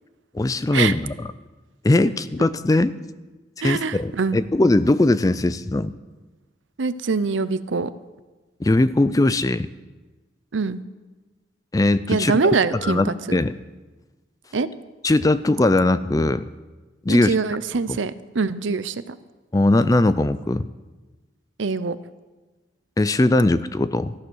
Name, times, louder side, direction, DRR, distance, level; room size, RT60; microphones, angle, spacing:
voice 1, 0.3-1.1 1.8-2.9 3.6-5.9 8.6-9.7 11.7-12.3 12.8-13.5 15.0-16.5 17.0-17.3 17.9-18.0 19.5-20.7 23.0-24.1, left 2 dB, 20° left, 15 dB, 0.3 m, -20 dB
voice 2, 3.6-4.4 6.8-7.9 10.5-10.8 12.1-13.4 14.5-14.7 17.1-19.2 21.6-22.0, right 4 dB, 80° right, 15 dB, 0.6 m, -24 dB
14.5 x 10.5 x 6.3 m, 1.2 s
head